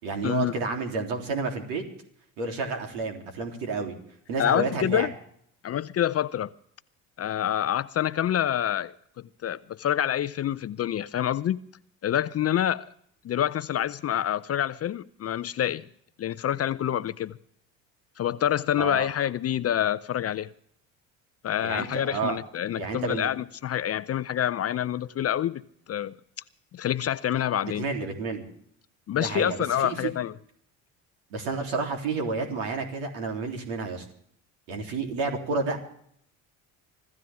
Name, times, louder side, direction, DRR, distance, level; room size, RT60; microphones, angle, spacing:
voice 1, 0.0-1.8 2.4-4.0 4.3-5.1 18.8-19.1 21.6-22.4 22.7-23.3 27.6-28.4 29.1-30.1 31.3-34.0 34.7-35.8, right 4 dB, 70° right, 3.4 m, -30 dB
voice 2, 4.4-5.1 5.6-6.5 7.2-8.9 9.4-11.6 12.0-12.9 13.2-15.8 16.2-17.4 18.2-20.5 21.4-25.6 25.9-26.1 26.7-27.9 29.1-30.3, left 10 dB, 35° left, 0.6 m, -27 dB
25.0 x 14.0 x 3.6 m
hypercardioid pair, 65°, 44 cm